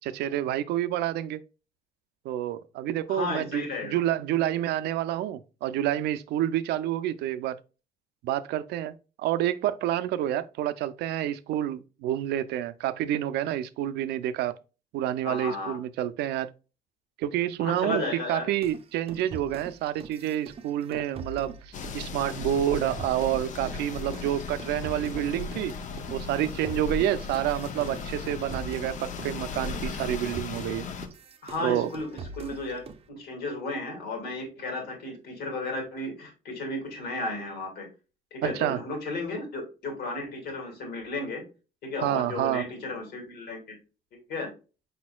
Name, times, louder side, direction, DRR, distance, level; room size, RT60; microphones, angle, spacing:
voice 1, 0.0-1.4 2.2-7.6 8.2-14.5 14.9-16.5 17.2-25.7 26.1-30.9 31.6-31.9 38.4-38.8 42.0-42.6, right 12 dB, 80° right, 0.4 m, -28 dB
voice 2, 3.1-4.0 15.3-15.8 17.6-18.5 19.1-19.2 31.4-32.8 33.1-37.9 38.3-41.4 41.8-43.8 44.1-44.5, left 2 dB, 70° left, 2.2 m, -34 dB
sound 1, 18.6-25.7 26.0-33.1, right 4 dB, 35° right, 0.6 m, -44 dB
sound 2, 21.7-31.1, left 4 dB, 45° left, 0.6 m, -36 dB
5.1 x 4.2 x 2.2 m
cardioid pair, 110°, 17 cm